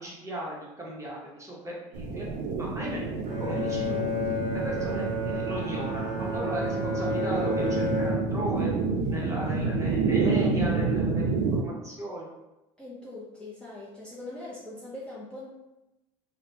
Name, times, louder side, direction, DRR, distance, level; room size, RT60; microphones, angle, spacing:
voice 1, 0.0-2.3 2.6-3.1 3.4-4.0 4.5-8.7 9.1-12.3, right 1 dB, 20° right, -4 dB, 0.9 m, -36 dB
sound 1, 1.9-11.6, right 4 dB, 85° right, 0.5 m, -29 dB
Bowed string instrument, 3.2-8.7, left 1 dB, 40° right, 1.3 m, -31 dB
voice 2, 12.8-15.5, left 2 dB, 5° left, -8 dB, 0.6 m, -41 dB
2.8 x 2.1 x 2.8 m, 0.97 s
supercardioid pair, 100°, 15 cm